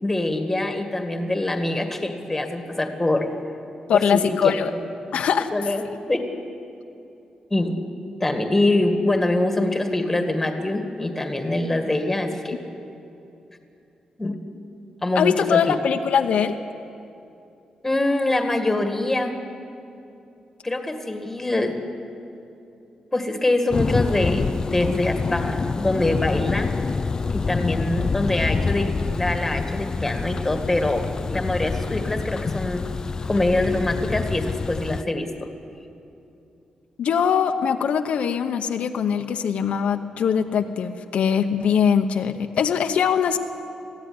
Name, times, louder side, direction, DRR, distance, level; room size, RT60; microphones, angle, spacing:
voice 1, 0.0-3.3 3.9-4.5 5.5-5.8 6.1-6.3 7.5-7.8 8.2-12.6 14.2-14.4 15.0-15.8 17.8-19.3 20.6-21.7 23.1-26.7 27.3-32.9 33.3-35.5, left 2 dB, 10° left, 5 dB, 1.9 m, -24 dB
voice 2, 3.9-4.7 5.1-5.5 15.1-16.5 37.0-43.4, left 7 dB, 75° left, 5 dB, 1.0 m, -22 dB
Thunder, 23.7-35.0, left 4 dB, 30° left, 0.4 m, -26 dB
21.5 x 15.5 x 9.7 m, 2.7 s
wide cardioid pair, 145°, 2 cm